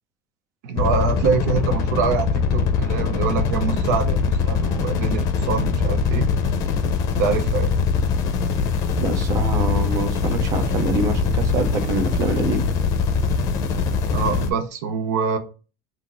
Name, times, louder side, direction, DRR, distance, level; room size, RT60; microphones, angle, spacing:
voice 1, 0.6-6.3 7.2-7.7 14.1-15.4, right 5 dB, 80° right, 0.8 m, -24 dB
sound 1, 0.8-14.5, left 5 dB, 45° left, 0.6 m, -22 dB
voice 2, 9.0-12.7, right 3 dB, 40° right, 0.8 m, -25 dB
5.7 x 2.8 x 2.6 m
supercardioid pair, 150°, 9 cm